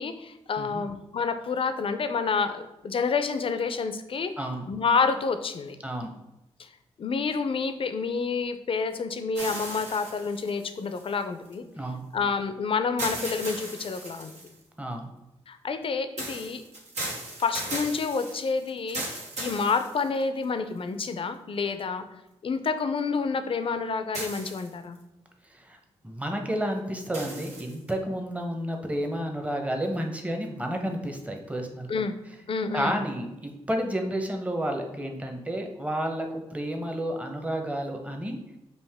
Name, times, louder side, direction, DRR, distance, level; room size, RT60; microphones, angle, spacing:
voice 1, 0.0-5.8 6.6-6.7 7.0-11.6 12.1-14.5 15.5-16.6 17.4-22.1 22.4-25.0 31.9-32.1 32.5-33.0, left 5 dB, 50° left, 9 dB, 0.5 m, -29 dB
voice 2, 5.8-6.1 11.8-12.0 14.8-15.1 25.5-25.8 26.0-32.0 32.7-38.4, right 1 dB, 10° right, 3 dB, 0.8 m, -31 dB
sound 1, 9.3-11.5 13.0-14.6 16.2-20.4 21.1-21.2 24.1-25.0 27.1-27.9, right 2 dB, 75° right, 1.2 m, -37 dB
5.4 x 2.5 x 3.5 m, 0.93 s
supercardioid pair, 50°, 12 cm